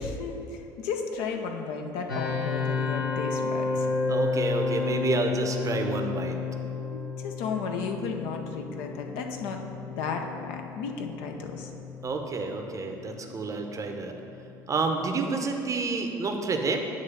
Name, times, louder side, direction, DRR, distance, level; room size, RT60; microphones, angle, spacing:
voice 1, 0.0-3.9 6.7-9.6 9.9-11.7, left 5 dB, 65° left, 3 dB, 0.6 m, -34 dB
sound 1, 2.1-14.9, left 4 dB, 80° left, 1.0 m, -32 dB
voice 2, 4.1-6.4 12.0-14.1 14.7-16.8, right 3 dB, 30° right, 4 dB, 0.7 m, -29 dB
8.4 x 3.2 x 5.7 m, 2.8 s
figure-of-eight pair, 55°, 11 cm